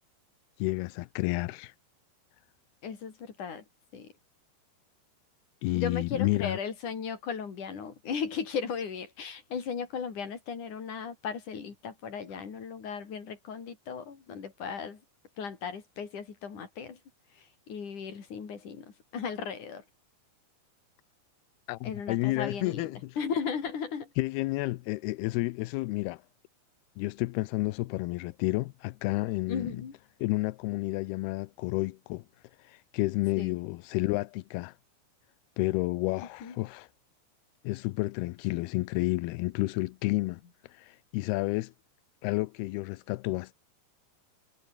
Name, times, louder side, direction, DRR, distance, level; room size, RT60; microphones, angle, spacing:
voice 1, 0.6-1.7 5.6-6.6 21.7-23.2 24.2-26.2 27.0-29.8 30.2-32.2 32.6-34.7 35.6-36.9 37.6-40.4 40.7-41.7 42.2-43.5, left 21 dB, 80° left, 2.3 m, -30 dB
voice 2, 2.8-3.6 3.9-4.1 5.7-15.0 15.4-17.0 17.3-19.8 21.8-24.1 29.5-30.0 33.4-33.6 36.4-36.6, left 6 dB, 45° left, 5.0 m, -36 dB
omnidirectional pair, 5.2 m